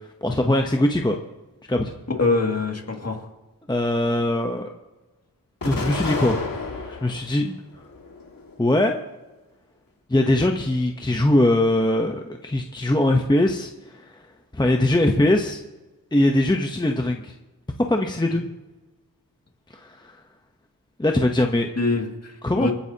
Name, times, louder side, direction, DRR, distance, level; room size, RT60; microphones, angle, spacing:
voice 1, 0.2-1.2 1.7-2.0 3.7-4.7 5.6-7.6 8.6-9.0 10.1-14.3 14.5-15.6 16.1-17.3 17.9-18.4 19.7-20.2 21.0-21.7 22.4-22.7, left 1 dB, 10° left, 3 dB, 0.9 m, -21 dB
voice 2, 2.2-3.3 21.8-22.7, left 3 dB, 40° left, 1 dB, 2.3 m, -24 dB
Explosion, 5.6-7.3 7.8-8.7, left 3 dB, 65° left, 2.1 m, -30 dB
27.5 x 9.7 x 2.9 m, 1.1 s
wide cardioid pair, 100°, 37 cm